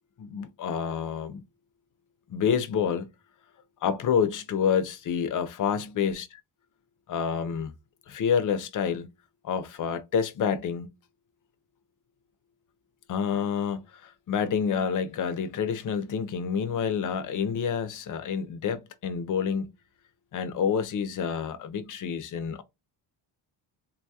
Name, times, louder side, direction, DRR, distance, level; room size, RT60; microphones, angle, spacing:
voice 1, 0.2-1.4 2.3-3.1 3.8-6.4 7.1-7.7 8.1-9.1 9.4-10.9 13.1-19.7 20.3-22.6, left 7 dB, 45° left, 0.6 m, -28 dB
3.8 x 2.3 x 2.6 m
cardioid pair, 170°, 43 cm